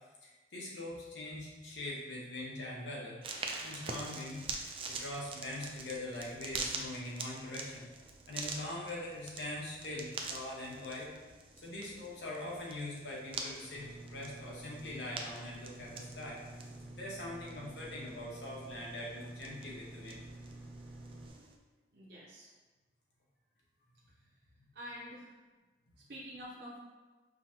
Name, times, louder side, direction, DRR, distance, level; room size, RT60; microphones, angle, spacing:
voice 1, 0.2-3.2 3.6-4.4 4.9-7.9 8.3-11.1 11.6-20.2, left 1 dB, 70° left, -4 dB, 1.1 m, -42 dB
sound 1, 3.2-21.6, right 4 dB, 30° right, 0.4 m, -45 dB
sound 2, 13.7-21.3, right 2 dB, 5° left, 0.8 m, -49 dB
voice 2, 21.9-22.5 24.2-24.3 24.7-25.3 26.1-26.8, equal, 60° right, -6 dB, 0.7 m, -47 dB
5.4 x 2.9 x 2.8 m, 1.3 s
head